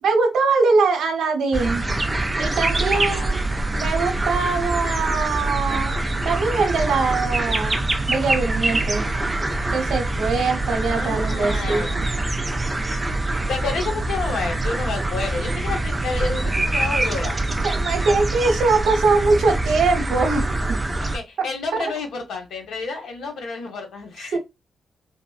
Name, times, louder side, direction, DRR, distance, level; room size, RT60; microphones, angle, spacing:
voice 1, 0.0-1.8 2.4-3.5 3.8-6.0 6.2-7.8 8.1-9.1 9.7-12.0 17.6-20.8 21.4-21.5 21.8-21.9 24.3-24.4, right 4 dB, 80° right, 0.8 m, -22 dB
sound 1, 1.5-21.2, right 2 dB, 15° right, 0.3 m, -24 dB
voice 2, 2.9-3.3 10.6-12.3 13.5-17.4 21.0-24.4, left 4 dB, 80° left, 1.0 m, -30 dB
3.4 x 2.1 x 2.4 m
wide cardioid pair, 165°, 0 cm